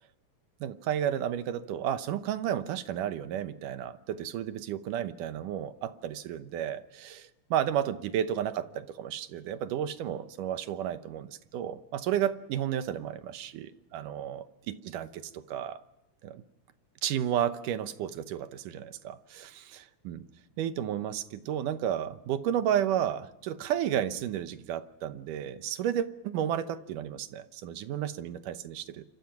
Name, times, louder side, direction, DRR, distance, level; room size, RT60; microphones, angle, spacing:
voice 1, 0.6-15.8 16.2-16.4 17.0-20.3 20.6-29.0, right 10 dB, 80° right, 11 dB, 2.5 m, -32 dB
28.0 x 25.0 x 5.9 m, 0.91 s
omnidirectional pair, 3.8 m